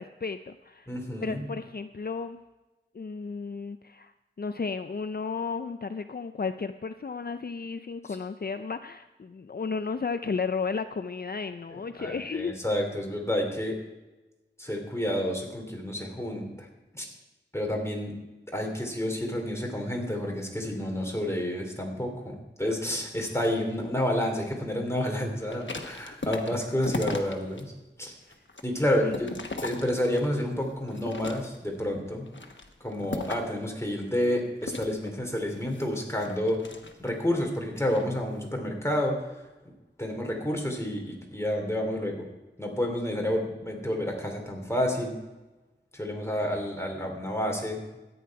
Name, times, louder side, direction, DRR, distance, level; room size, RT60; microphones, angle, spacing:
voice 1, 0.0-0.9 1.2-2.4 2.9-12.5 29.0-29.2, left 5 dB, 55° left, 10 dB, 0.5 m, -33 dB
voice 2, 0.9-1.5 11.7-13.7 14.6-16.7 16.9-17.0 17.5-18.1 18.5-27.7 28.0-28.1 28.6-29.3 29.6-32.3 32.8-36.6 37.0-39.2 40.0-42.3 42.6-45.2 45.9-47.8, left 1 dB, 15° left, 1 dB, 2.9 m, -29 dB
sound 1, 25.4-27.6 28.1-30.4 30.9-31.8 32.3-33.6 34.6-37.3 37.8-38.1, left 2 dB, 80° left, 1.1 m, -37 dB
14.0 x 9.5 x 4.7 m, 1.1 s
wide cardioid pair, 40°, 19 cm